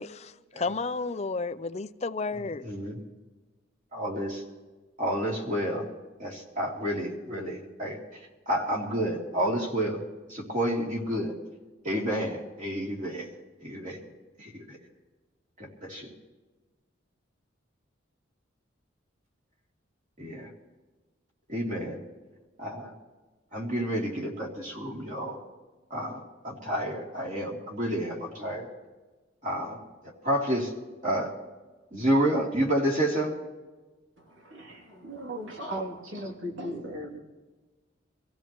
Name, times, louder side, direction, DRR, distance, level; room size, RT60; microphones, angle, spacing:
voice 1, 0.0-2.6, left 3 dB, 35° left, 0.5 m, -32 dB
voice 2, 2.3-2.9 3.9-4.4 5.0-5.9 6.2-8.0 8.5-10.0 10.3-11.3 11.8-13.3 13.6-14.0 14.4-14.8 15.6-16.1 20.2-20.5 21.5-22.0 22.6-22.9 23.5-25.4 25.9-28.7 29.4-29.8 30.0-30.7 31.0-31.3 31.9-33.3 36.1-36.2, equal, 40° right, 3.1 m, -30 dB
voice 3, 34.2-37.2, right 1 dB, 75° right, 2.9 m, -37 dB
25.0 x 15.5 x 3.1 m
head